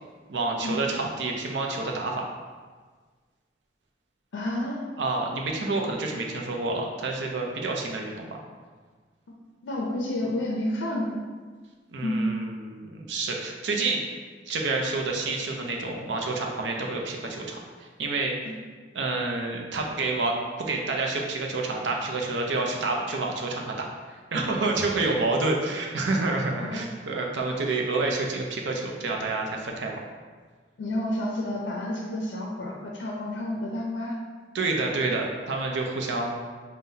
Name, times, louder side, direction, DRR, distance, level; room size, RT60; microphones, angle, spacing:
voice 1, 0.3-2.2 5.0-8.4 11.9-14.0 14.5-18.3 18.9-23.9 24.3-30.0 34.5-36.3, right 3 dB, 80° right, 0 dB, 0.5 m, -28 dB
voice 2, 4.3-4.9 9.3-9.4 9.6-11.2 12.0-12.3 26.6-26.9 30.8-34.2, left 1 dB, 85° left, -2 dB, 0.4 m, -30 dB
5.5 x 2.1 x 2.7 m, 1.5 s
head